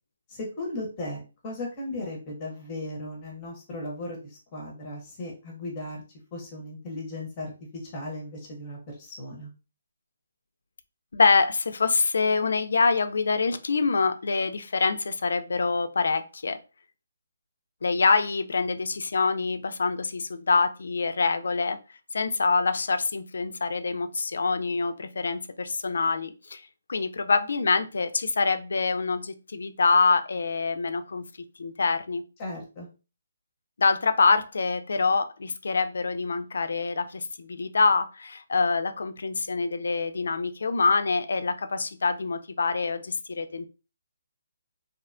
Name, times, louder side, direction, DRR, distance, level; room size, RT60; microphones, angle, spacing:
voice 1, 0.3-6.0 6.3-9.5 32.4-32.9, left 1 dB, 20° left, -1 dB, 0.6 m, -36 dB
voice 2, 11.1-16.6 17.8-21.8 22.1-31.2 31.6-32.2 33.8-43.7, left 4 dB, 70° left, 10 dB, 0.3 m, -25 dB
2.6 x 2.1 x 2.5 m, 0.32 s
hypercardioid pair, 170°, 0 cm